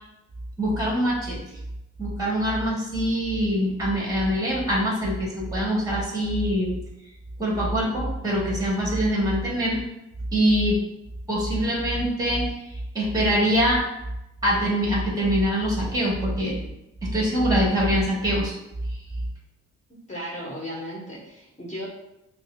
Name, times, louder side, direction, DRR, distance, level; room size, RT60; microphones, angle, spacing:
voice 1, 0.6-1.4 2.0-6.7 7.4-9.8 10.3-10.8 11.3-13.8 14.4-16.6 17.0-18.5, equal, 10° right, -3 dB, 1.1 m, -24 dB
voice 2, 20.1-21.9, equal, 25° left, -5 dB, 1.4 m, -35 dB
5.3 x 2.0 x 2.4 m, 0.90 s
cardioid pair, 90°, 30 cm